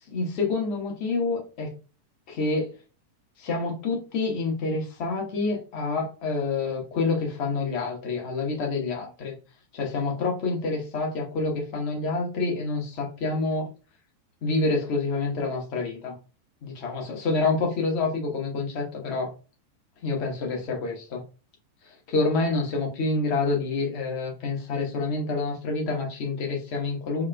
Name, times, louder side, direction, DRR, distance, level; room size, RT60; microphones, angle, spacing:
voice 1, 0.1-1.7 2.3-2.7 3.4-9.3 9.7-13.7 14.4-16.1 16.6-19.3 20.0-21.2 21.8-27.3, left 3 dB, 45° left, 0 dB, 1.2 m, -27 dB
3.5 x 2.4 x 2.3 m, 0.33 s
figure-of-eight pair, 90°, 0 cm